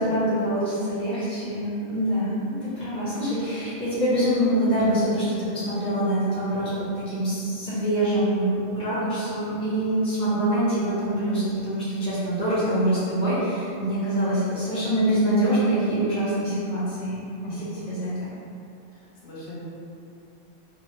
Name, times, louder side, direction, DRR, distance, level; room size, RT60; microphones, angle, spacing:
voice 1, 0.0-17.2 17.9-18.3, right 1 dB, 5° left, -11 dB, 0.5 m, -25 dB
voice 2, 18.9-19.6, left 1 dB, 70° left, -8 dB, 0.8 m, -39 dB
2.4 x 2.0 x 2.9 m, 2.6 s
omnidirectional pair, 1.3 m